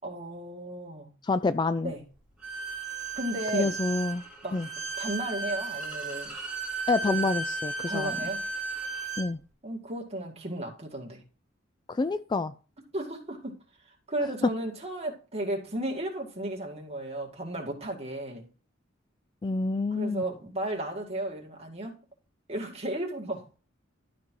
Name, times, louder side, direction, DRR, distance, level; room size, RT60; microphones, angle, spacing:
voice 1, 0.0-1.1 1.8-2.0 3.2-3.7 4.4-4.6 5.0-6.3 7.1-7.2 7.9-8.4 9.6-11.2 12.9-13.6 14.1-18.5 19.9-22.0 22.5-23.4, right 1 dB, 30° right, 2.2 m, -34 dB
voice 2, 1.2-1.9 3.5-4.2 4.5-4.7 6.9-8.1 9.2-9.4 11.9-12.5 14.4-14.5 19.4-20.2, left 3 dB, 25° left, 0.3 m, -27 dB
Bowed string instrument, 2.4-9.3, right 4 dB, 5° right, 3.3 m, -34 dB
12.0 x 4.3 x 4.6 m
head